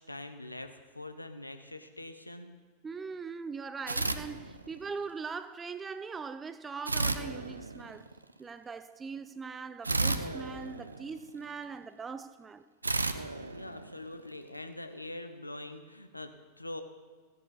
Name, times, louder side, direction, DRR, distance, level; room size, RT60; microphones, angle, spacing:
voice 1, 0.0-2.5 13.5-16.8, left 1 dB, 85° left, 0.9 m, -44 dB
voice 2, 2.8-8.1 8.4-12.7, right 5 dB, 15° right, 0.5 m, -41 dB
sound 1, 3.9-5.0 6.9-8.2 9.8-11.5 12.8-14.4, right 3 dB, 80° right, 0.6 m, -33 dB
16.0 x 10.5 x 4.0 m
figure-of-eight pair, 90°, 0 cm